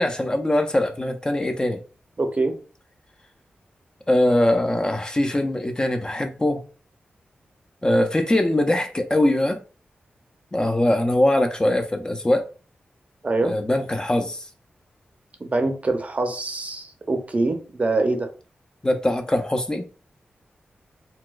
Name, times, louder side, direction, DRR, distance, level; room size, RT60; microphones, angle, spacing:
voice 1, 0.0-1.8 4.1-6.6 7.8-9.6 10.5-12.5 13.4-14.5 18.8-19.9, left 1 dB, 20° left, 0.4 m, -22 dB
voice 2, 2.2-2.6 13.2-13.6 15.4-18.3, right 2 dB, 40° right, 0.6 m, -24 dB
4.0 x 2.2 x 2.3 m
cardioid pair, 60°, 4 cm